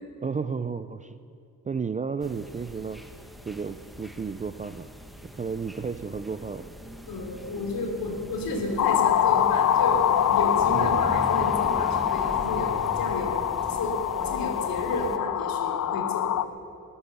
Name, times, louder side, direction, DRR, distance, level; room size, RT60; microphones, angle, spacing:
voice 1, 0.2-1.2 1.6-3.0 3.5-4.9 5.2-6.7 10.7-11.0, right 5 dB, 20° right, 12 dB, 0.4 m, -32 dB
sound 1, 2.2-15.2, equal, ahead, 0.9 m, -41 dB
voice 2, 7.1-13.4 13.7-16.3, left 2 dB, 70° left, 2 dB, 3.3 m, -31 dB
sound 2, 8.8-16.4, left 10 dB, 50° left, 0.5 m, -24 dB
19.5 x 9.7 x 6.8 m, 2.5 s
cardioid pair, 120°, 37 cm